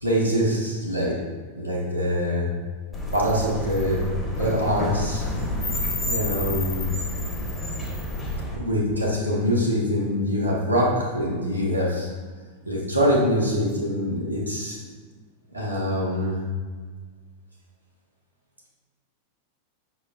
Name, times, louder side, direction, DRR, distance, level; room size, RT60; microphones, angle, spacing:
voice 1, 0.0-2.6 3.1-5.3 6.1-6.9 8.5-12.1 12.6-14.8 15.5-16.5, equal, 85° right, -5 dB, 0.9 m, -24 dB
sound 1, 2.9-8.5, left 1 dB, 15° left, 1.0 m, -29 dB
5.4 x 4.2 x 2.3 m, 1.5 s
figure-of-eight pair, 90°, 0 cm